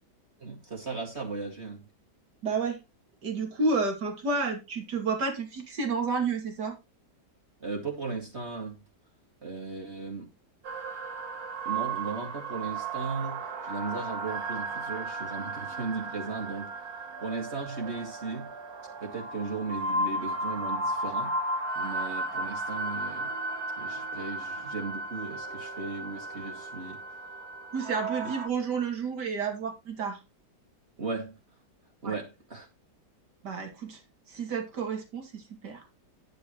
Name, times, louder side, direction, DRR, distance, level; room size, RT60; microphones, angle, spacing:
voice 1, 0.4-1.8 7.6-8.8 9.4-10.3 11.6-16.7 17.2-18.5 19.0-21.3 21.8-23.3 23.8-27.0 31.0-31.4 32.0-32.7, right 4 dB, 40° right, 2.4 m, -36 dB
voice 2, 2.4-2.8 3.2-6.7 27.7-30.2 32.0-32.2 33.4-34.0 34.3-35.8, right 4 dB, 80° right, 3.1 m, -30 dB
sound 1, 10.6-28.5, right 2 dB, 65° right, 1.7 m, -35 dB
10.0 x 9.6 x 3.1 m
omnidirectional pair, 1.8 m